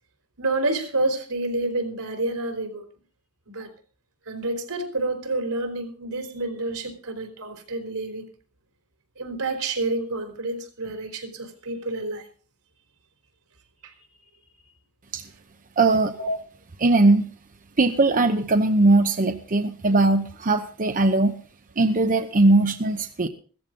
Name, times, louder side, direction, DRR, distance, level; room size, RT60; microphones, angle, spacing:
voice 1, 0.4-2.8 3.5-3.7 4.3-8.3 9.2-12.2 13.8-13.9 16.2-16.3, right 2 dB, 85° right, 3.9 m, -28 dB
voice 2, 15.8-16.1 16.8-17.3 17.8-21.3 21.8-23.3, right 2 dB, 40° right, 0.8 m, -20 dB
16.0 x 14.0 x 3.8 m
head